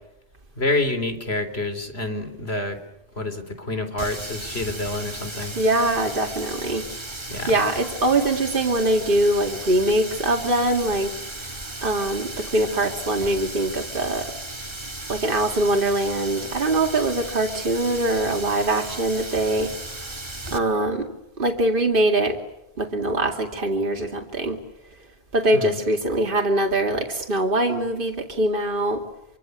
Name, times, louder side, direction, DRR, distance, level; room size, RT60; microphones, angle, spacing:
voice 1, 0.6-2.8 3.2-5.6 7.3-7.6 25.5-25.7, left 2 dB, 80° left, 9 dB, 4.0 m, -27 dB
Water tap faucet, 4.0-20.6, right 2 dB, 25° right, 2.0 m, -35 dB
voice 2, 5.5-6.9 7.5-11.1 11.8-14.3 15.1-19.7 20.5-22.4 22.8-24.6 25.3-29.0, right 1 dB, 55° right, 2 dB, 2.5 m, -23 dB
27.5 x 25.0 x 8.2 m, 0.87 s
omnidirectional pair, 1.1 m